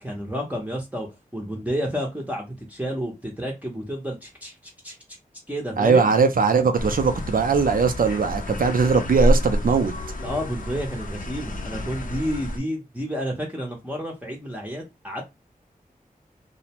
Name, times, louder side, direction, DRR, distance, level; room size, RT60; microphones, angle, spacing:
voice 1, 0.0-4.5 4.8-5.0 5.5-6.1 10.2-15.2, equal, 10° right, 0.6 m, -30 dB
voice 2, 5.8-9.9, right 5 dB, 70° right, 0.4 m, -20 dB
sound 1, 6.8-12.6, equal, 65° left, 0.5 m, -28 dB
2.5 x 2.0 x 2.8 m
wide cardioid pair, 75°, 15 cm